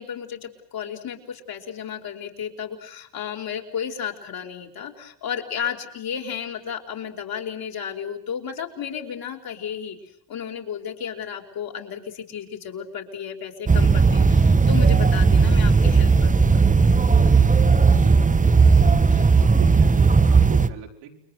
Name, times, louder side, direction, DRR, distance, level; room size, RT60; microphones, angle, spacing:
voice 1, 0.0-10.0 10.3-16.6 19.1-19.3, left 8 dB, 55° left, 3 dB, 5.4 m, -33 dB
sound 1, 13.7-20.7, right 4 dB, 20° right, 1.3 m, -16 dB
voice 2, 17.9-18.5 19.4-21.3, right 9 dB, 85° right, 1 dB, 5.3 m, -39 dB
29.5 x 22.5 x 8.0 m, 0.66 s
supercardioid pair, 90°, 43 cm